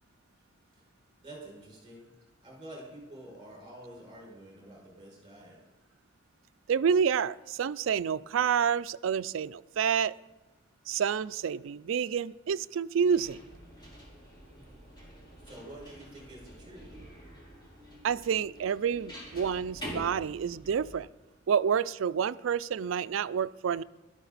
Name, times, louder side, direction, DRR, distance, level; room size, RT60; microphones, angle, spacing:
voice 1, 1.2-2.1 2.4-5.6 15.4-16.9, right 1 dB, 25° right, -3 dB, 6.0 m, -48 dB
voice 2, 6.7-10.2 10.9-13.4 18.0-21.1 21.5-23.8, right 7 dB, 75° right, 18 dB, 0.4 m, -28 dB
sound 1, 13.1-21.0, equal, 25° left, 3.9 m, -47 dB
18.0 x 13.0 x 4.1 m, 1.1 s
head